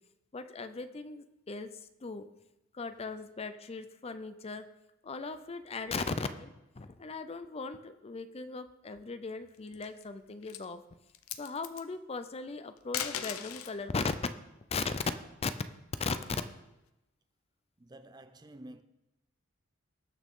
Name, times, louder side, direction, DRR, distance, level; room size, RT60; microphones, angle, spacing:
voice 1, 0.3-2.3 2.7-4.7 5.0-10.8 11.4-14.2 14.7-15.0 15.4-15.5 16.0-16.2, left 4 dB, 30° left, 0.5 m, -38 dB
sound 1, 9.5-10.0 10.4-10.7 11.1-11.8 12.8-13.8 15.3-16.5, left 9 dB, 85° left, 0.7 m, -39 dB
voice 2, 17.8-18.8, right 1 dB, 20° right, 0.5 m, -50 dB
19.0 x 6.4 x 3.7 m
head